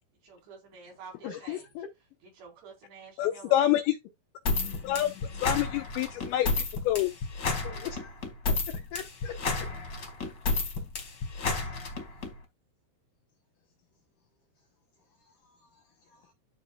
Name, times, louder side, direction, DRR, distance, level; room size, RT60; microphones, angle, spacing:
voice 1, 0.2-1.7 2.2-3.6, right 5 dB, 70° right, 6.3 m, -49 dB
voice 2, 1.2-1.9 7.6-8.1 8.7-9.7 11.5-11.9 15.2-16.3, left 9 dB, 70° left, 2.1 m, -42 dB
voice 3, 3.2-3.9 4.8-5.1 5.4-7.1, left 13 dB, 90° left, 2.2 m, -26 dB
sound 1, 4.4-12.3, left 3 dB, 50° left, 1.4 m, -31 dB
13.0 x 4.4 x 2.3 m
omnidirectional pair, 5.0 m